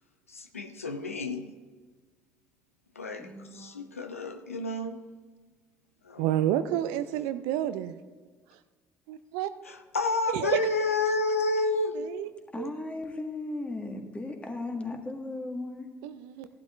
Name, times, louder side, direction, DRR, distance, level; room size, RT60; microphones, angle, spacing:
voice 1, 0.3-1.6 3.0-5.0 6.0-6.5 9.6-12.1, left 2 dB, 85° left, 7 dB, 0.5 m, -30 dB
voice 2, 3.2-3.7 12.5-15.9, left 2 dB, 15° left, 3 dB, 1.7 m, -36 dB
voice 3, 6.2-8.0 9.1-9.5 10.3-10.6 11.9-12.3 12.6-12.7 16.0-16.5, right 12 dB, 65° right, 12 dB, 0.5 m, -29 dB
14.5 x 11.5 x 2.6 m, 1.4 s
figure-of-eight pair, 55°, 7 cm